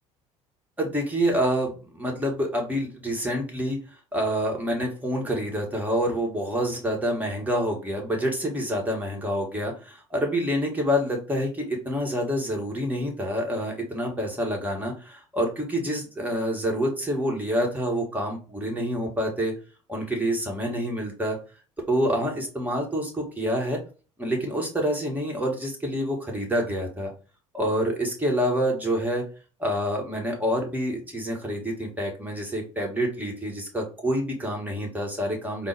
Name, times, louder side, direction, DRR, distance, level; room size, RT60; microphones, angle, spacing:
voice 1, 0.8-3.8 4.1-19.5 19.9-21.4 21.9-23.8 24.2-27.1 27.5-29.2 29.6-35.7, equal, 10° right, 0 dB, 1.6 m, -27 dB
4.0 x 2.4 x 3.5 m, 0.35 s
figure-of-eight pair, 60°, 16 cm